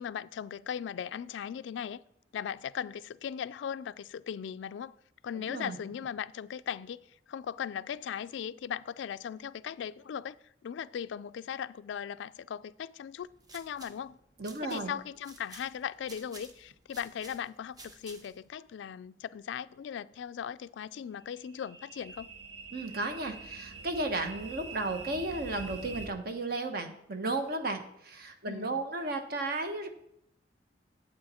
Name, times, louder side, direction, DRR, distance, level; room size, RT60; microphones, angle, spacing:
voice 1, 0.0-2.0 2.3-4.9 5.2-7.0 7.3-10.4 10.6-14.2 14.6-22.3 28.5-28.8, left 8 dB, 70° left, 0.3 m, -38 dB
voice 2, 5.4-5.8 14.4-14.9 22.7-29.9, right 2 dB, 55° right, 1.0 m, -34 dB
sound 1, 13.2-18.5, right 2 dB, 20° right, 0.8 m, -53 dB
sound 2, 21.0-26.1, right 4 dB, 80° right, 0.9 m, -45 dB
8.6 x 7.9 x 4.3 m
head